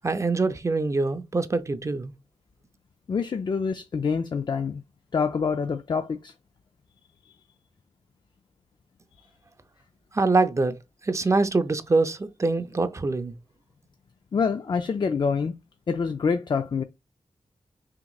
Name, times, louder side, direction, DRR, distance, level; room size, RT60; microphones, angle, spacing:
voice 1, 0.0-2.1 10.1-10.7 11.0-13.3, right 3 dB, 25° right, 0.5 m, -24 dB
voice 2, 3.1-4.8 5.1-6.3 7.2-7.4 11.2-11.4 14.3-15.5 15.9-16.8, left 5 dB, 45° left, 0.4 m, -26 dB
5.8 x 2.9 x 2.3 m
wide cardioid pair, 110°, 11 cm